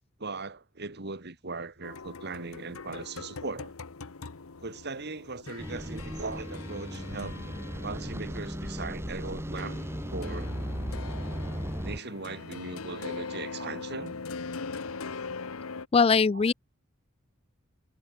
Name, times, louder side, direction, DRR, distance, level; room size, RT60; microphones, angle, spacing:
voice 1, 0.2-3.7 4.6-7.4 7.8-9.8 10.1-10.6 11.8-14.1 16.3-16.5, right 3 dB, 50° right, 2.3 m, -39 dB
sound 1, 1.8-15.9, left 4 dB, 85° left, 1.1 m, -41 dB
sound 2, 5.6-12.0, equal, 10° right, 3.4 m, -36 dB
voice 2, 15.9-16.5, left 5 dB, 30° left, 0.4 m, -21 dB
head